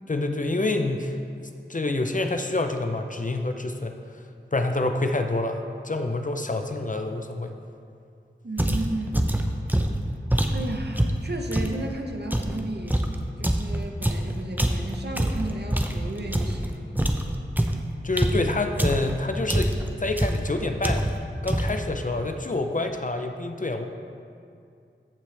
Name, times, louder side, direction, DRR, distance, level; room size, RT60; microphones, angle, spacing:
voice 1, 0.1-1.2 1.7-4.2 4.5-7.5 18.0-21.0 21.4-23.8, left 2 dB, 40° left, 5 dB, 0.6 m, -27 dB
voice 2, 8.4-9.4 10.5-13.0 13.4-16.9, right 2 dB, 55° right, 2 dB, 1.0 m, -33 dB
sound 1, 8.6-11.8 12.3-16.7 17.0-19.2 19.5-19.9 20.2-20.5 20.8-21.2 21.5-21.9, right 1 dB, 10° right, 0.6 m, -25 dB
14.5 x 6.1 x 3.4 m, 2.4 s
wide cardioid pair, 55°, 20 cm